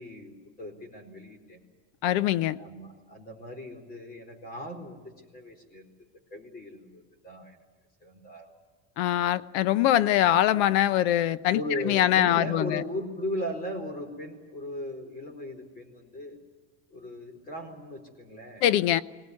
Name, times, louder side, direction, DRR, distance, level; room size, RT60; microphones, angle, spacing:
voice 1, 0.0-1.6 2.6-5.9 6.3-7.6 8.0-8.5 11.5-16.4 16.9-18.6, left 1 dB, 25° left, 5 dB, 4.4 m, -37 dB
voice 2, 2.0-2.6 9.0-11.6 11.8-12.8 18.6-19.0, left 12 dB, 70° left, 16 dB, 0.9 m, -23 dB
22.5 x 18.5 x 9.7 m, 1.4 s
cardioid pair, 150°, 33 cm